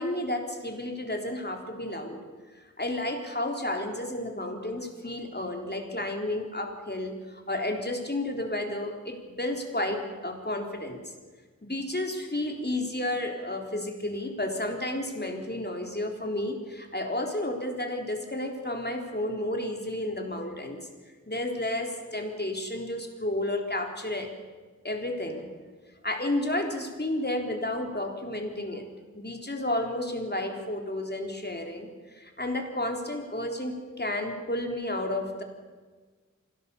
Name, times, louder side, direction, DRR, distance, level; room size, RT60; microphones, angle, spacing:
voice 1, 0.0-2.2 2.5-11.1 11.7-20.8 21.3-24.3 24.8-25.5 26.0-28.9 29.1-35.4, left 1 dB, 35° left, 3 dB, 3.8 m, -32 dB
25.5 x 17.0 x 7.1 m, 1.4 s
wide cardioid pair, 50°, 30 cm